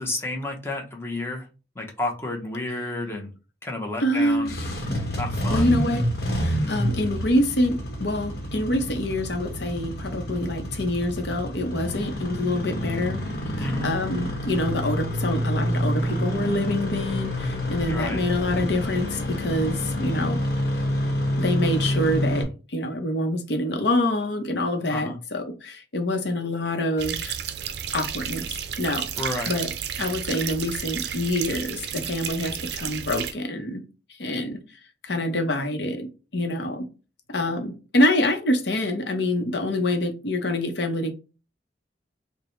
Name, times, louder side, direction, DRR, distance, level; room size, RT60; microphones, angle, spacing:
voice 1, 0.0-1.5 1.8-3.3 3.6-4.5 5.2-5.7 13.6-13.9 17.8-18.2 24.9-25.2 29.2-29.5, left 2 dB, 15° left, 0.8 m, -31 dB
voice 2, 4.0-4.5 5.5-6.0 6.3-13.2 13.6-20.4 21.4-27.3 27.9-29.1 29.5-29.7 30.0-33.8 34.2-34.6 35.0-36.8 37.3-41.1, left 1 dB, 75° left, 0.8 m, -26 dB
Engine starting, 4.3-22.4, equal, 60° left, 1.1 m, -28 dB
sound 1, 27.0-33.3, right 9 dB, 65° right, 0.4 m, -32 dB
4.8 x 2.2 x 3.1 m
head